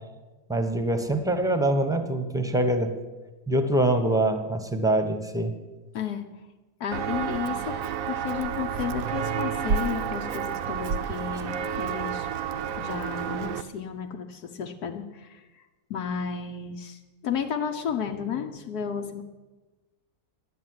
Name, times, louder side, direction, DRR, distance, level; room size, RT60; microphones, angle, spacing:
voice 1, 0.5-2.9 3.5-5.5, right 1 dB, 5° right, 7 dB, 0.8 m, -24 dB
voice 2, 5.9-6.3 6.8-12.3 12.8-15.6 15.9-19.2, left 7 dB, 80° left, 3 dB, 1.4 m, -33 dB
Walk footsteps, 6.9-13.6, right 7 dB, 65° right, 1.0 m, -30 dB
11.0 x 8.1 x 9.5 m, 1.2 s
omnidirectional pair, 1.6 m